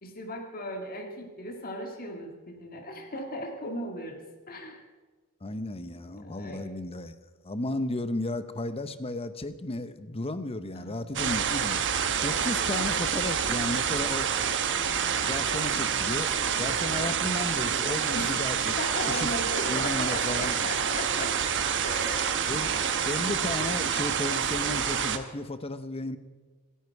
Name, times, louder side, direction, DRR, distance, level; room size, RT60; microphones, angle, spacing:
voice 1, 0.0-4.2 4.5-4.8 5.8-6.0 6.2-6.7 10.7-11.0 18.1-18.4 18.8-21.4 21.8-22.5, left 1 dB, 45° left, 2 dB, 1.9 m, -37 dB
voice 2, 5.4-7.2 7.4-14.3 15.2-18.8 19.1-19.3 19.7-20.6 22.5-22.7 23.0-26.2, left 2 dB, 25° left, 11 dB, 0.9 m, -34 dB
sound 1, 11.1-25.2, right 7 dB, 55° right, 1.1 m, -28 dB
26.5 x 10.5 x 4.7 m, 1.4 s
head